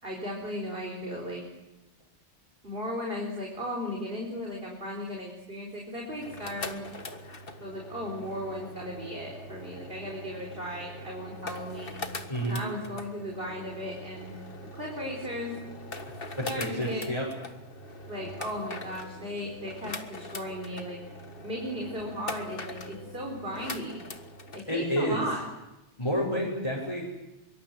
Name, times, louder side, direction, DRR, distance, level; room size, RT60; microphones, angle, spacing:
voice 1, 0.0-1.4 2.6-6.8 7.6-11.9 12.4-14.3 14.7-15.6 16.4-17.1 18.1-21.0 21.4-24.0 24.5-25.4, equal, 55° right, -1 dB, 4.3 m, -36 dB
sound 1, 6.1-24.6, left 2 dB, 50° left, 1.8 m, -42 dB
voice 2, 12.3-12.7 16.3-17.3 24.7-25.3 26.0-27.0, equal, 25° left, -4 dB, 6.0 m, -29 dB
25.0 x 23.5 x 7.7 m, 0.98 s
omnidirectional pair, 1.2 m